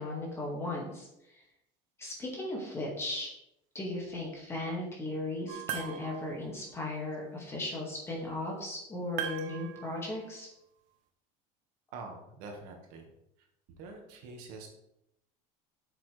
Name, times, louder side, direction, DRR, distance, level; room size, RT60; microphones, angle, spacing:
voice 1, 0.0-1.4 2.0-3.3 3.7-10.5, left 2 dB, 15° left, -2 dB, 2.0 m, -37 dB
sound 1, 5.5-6.5 9.2-10.3, right 10 dB, 75° right, 1.1 m, -39 dB
voice 2, 11.9-13.0 13.8-14.7, right 3 dB, 55° right, 2 dB, 1.8 m, -45 dB
8.2 x 7.1 x 3.4 m, 0.82 s
cardioid pair, 170°, 17 cm